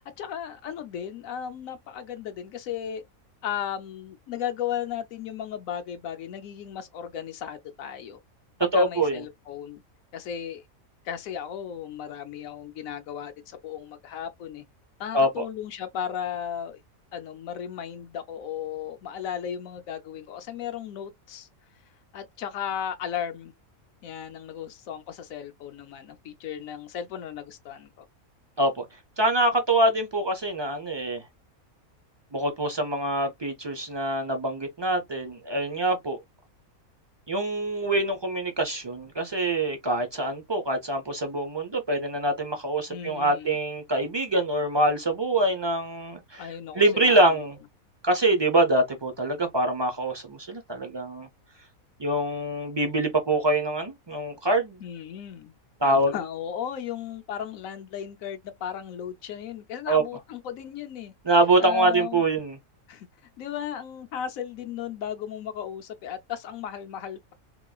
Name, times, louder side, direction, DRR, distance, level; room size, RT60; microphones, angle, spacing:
voice 1, 0.0-3.0 3.4-8.2 8.6-9.8 10.1-10.6 11.0-14.6 15.0-16.8 17.1-21.5 22.1-23.5 24.0-28.1 42.9-43.6 46.4-47.4 54.8-55.5 55.8-61.1 61.6-62.2 62.9-63.1 63.4-67.3, left 9 dB, 75° left, 1.0 m, -35 dB
voice 2, 8.7-9.2 15.1-15.4 28.6-28.8 29.2-31.2 32.3-36.2 37.3-46.5 46.7-47.5 48.0-51.3 52.0-54.8 55.8-56.1 59.9-60.0 61.2-62.6, right 1 dB, 45° right, 0.3 m, -24 dB
3.9 x 3.0 x 2.2 m
omnidirectional pair, 1.5 m